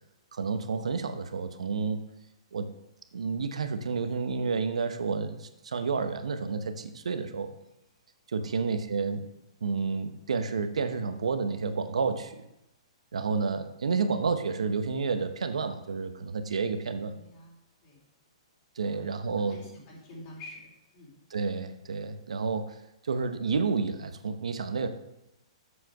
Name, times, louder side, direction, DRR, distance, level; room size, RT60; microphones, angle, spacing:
voice 1, 0.3-2.0 2.5-2.7 3.1-7.5 8.3-9.3 9.6-12.5 13.1-17.1 18.8-19.6 21.3-22.7 23.1-24.9, right 5 dB, 90° right, 9 dB, 0.9 m, -30 dB
voice 2, 8.4-8.7 17.1-17.5 17.8-18.0 18.8-21.2, left 1 dB, 40° left, -4 dB, 3.3 m, -48 dB
7.6 x 6.3 x 6.0 m, 0.87 s
hypercardioid pair, 140°, 3 cm